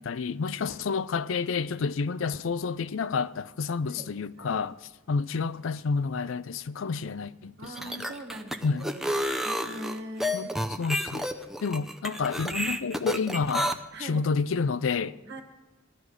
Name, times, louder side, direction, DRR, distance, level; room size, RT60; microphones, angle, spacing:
voice 1, 0.0-4.7 5.1-7.6 8.6-8.9 10.3-10.5 10.8-11.3 11.6-13.7 14.0-15.4, left 5 dB, 80° left, 0.5 m, -29 dB
sound 1, 7.6-13.7, equal, ahead, 0.6 m, -30 dB
voice 2, 7.6-10.6 13.9-14.2 15.2-15.4, right 1 dB, 60° right, 1.7 m, -42 dB
16.5 x 12.0 x 4.8 m
head